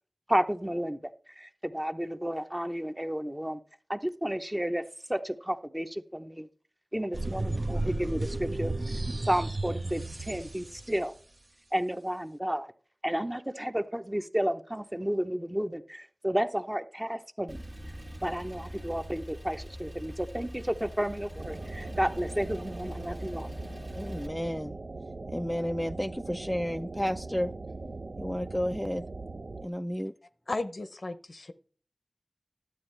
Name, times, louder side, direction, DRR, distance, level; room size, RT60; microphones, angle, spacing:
voice 1, 0.3-3.6 3.9-4.8 5.1-6.5 6.9-8.7 9.2-11.1 11.7-12.7 13.0-17.6 18.2-23.5, equal, 15° right, 7 dB, 0.8 m, -32 dB
sound 1, 7.1-11.1, right 2 dB, 55° right, 0.7 m, -33 dB
Male speech man speaking / Car / Idling, 17.5-24.3, equal, 35° right, 1.3 m, -42 dB
sound 2, 21.4-29.7, right 3 dB, 80° right, 0.5 m, -41 dB
voice 2, 23.9-24.8 25.3-27.5 28.2-29.0 29.6-30.1, equal, 5° left, 6 dB, 0.3 m, -31 dB
voice 3, 30.5-31.5, left 2 dB, 70° left, 11 dB, 0.7 m, -35 dB
11.5 x 8.0 x 3.3 m, 0.41 s
wide cardioid pair, 60°, 0 cm